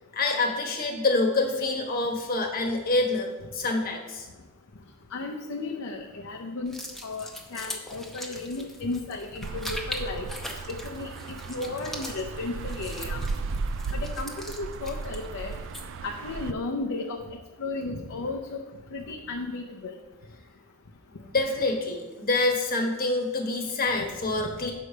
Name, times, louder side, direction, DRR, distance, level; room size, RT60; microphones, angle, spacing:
voice 1, 0.1-4.3 21.2-24.7, left 2 dB, 40° left, 3 dB, 1.2 m, -26 dB
voice 2, 5.1-6.7 7.0-10.3 10.7-13.2 13.9-15.5 16.0-18.6 18.9-19.9, left 3 dB, 65° left, 1 dB, 0.6 m, -34 dB
sound 1, 6.7-16.1, equal, ahead, 0.7 m, -41 dB
sound 2, 9.4-16.5, right 4 dB, 60° right, 0.4 m, -35 dB
5.5 x 5.0 x 6.6 m, 1.2 s
head